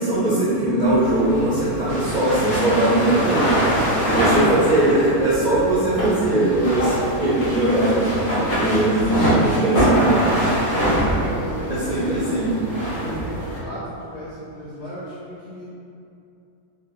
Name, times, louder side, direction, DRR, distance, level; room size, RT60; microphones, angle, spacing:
voice 1, 0.0-10.6 11.6-12.5, right 1 dB, 60° right, -10 dB, 0.4 m, -21 dB
sound 1, 0.8-13.6, right 1 dB, 40° left, 1.5 m, -23 dB
voice 2, 10.8-12.4 12.9-15.6, equal, 90° left, -12 dB, 2.1 m, -35 dB
4.5 x 2.1 x 3.3 m, 2.6 s
omnidirectional pair, 1.6 m